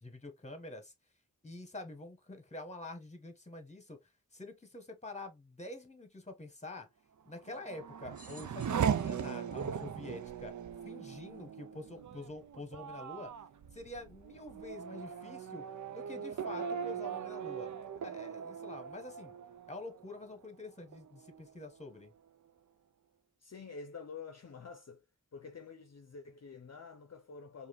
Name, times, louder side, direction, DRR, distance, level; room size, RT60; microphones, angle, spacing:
voice 1, 0.0-0.9 1.4-6.9 7.2-10.5 10.8-13.3 13.7-15.6 15.9-17.8 18.0-19.3 19.7-22.1, left 2 dB, 20° left, 1.2 m, -47 dB
Race car auto racing / Accelerating revving vroom, 7.3-20.5 20.9-21.6, right 7 dB, 65° right, 0.4 m, -39 dB
sound 1, 8.1-10.8 11.5-11.6 12.7-12.8, right 2 dB, 25° right, 1.9 m, -59 dB
voice 2, 23.4-25.1 25.3-27.7, left 5 dB, 50° left, 0.6 m, -48 dB
4.8 x 2.6 x 3.0 m
wide cardioid pair, 55°, 32 cm